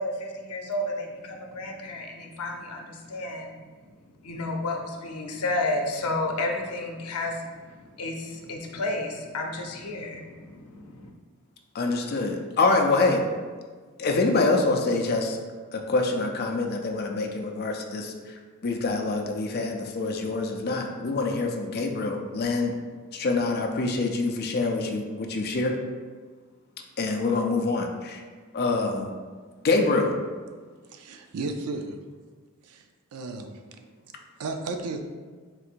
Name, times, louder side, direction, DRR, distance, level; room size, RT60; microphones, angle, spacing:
voice 1, 0.0-3.5 4.2-11.1, left 2 dB, 90° left, 2 dB, 0.6 m, -32 dB
voice 2, 11.7-13.2 14.0-15.4 15.7-18.3 18.6-22.8 23.1-25.8 27.0-28.2 28.5-29.1 29.6-30.2, left 3 dB, 45° left, 2 dB, 0.4 m, -25 dB
voice 3, 30.9-32.0 32.6-32.8 33.1-33.8 34.4-35.0, right 3 dB, 80° right, 5 dB, 0.4 m, -34 dB
3.7 x 2.5 x 4.4 m, 1.5 s
head